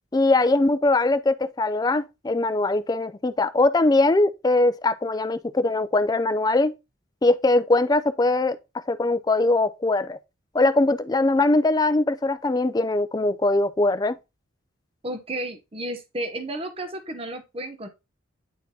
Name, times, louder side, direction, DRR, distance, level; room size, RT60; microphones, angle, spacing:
voice 1, 0.1-6.7 7.2-8.6 8.9-10.2 10.5-14.2, left 2 dB, 20° left, 0.3 m, -21 dB
voice 2, 15.0-17.9, right 1 dB, 30° right, 0.7 m, -32 dB
9.2 x 4.3 x 2.7 m
head